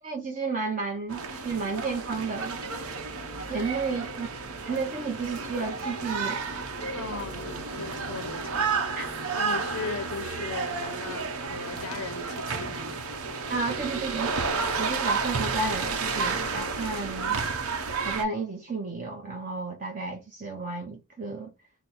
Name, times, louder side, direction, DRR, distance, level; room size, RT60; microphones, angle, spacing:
voice 1, 0.0-2.6 3.5-4.3 4.6-6.4 9.0-9.1 13.5-14.3 14.8-17.4 18.0-21.5, right 4 dB, 35° right, 0.6 m, -32 dB
sound 1, 1.1-18.2, right 4 dB, 75° right, 0.8 m, -31 dB
voice 2, 6.9-8.8 9.3-12.9, left 5 dB, 75° left, 0.6 m, -38 dB
4.1 x 2.0 x 4.1 m
head